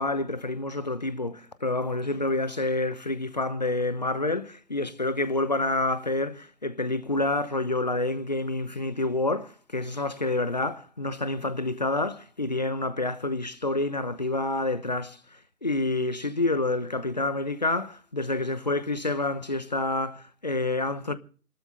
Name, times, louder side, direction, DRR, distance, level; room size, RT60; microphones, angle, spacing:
voice 1, 0.0-15.2 15.6-21.2, left 2 dB, 25° left, 0.9 m, -28 dB
28.0 x 12.5 x 3.5 m
figure-of-eight pair, 155°, 47 cm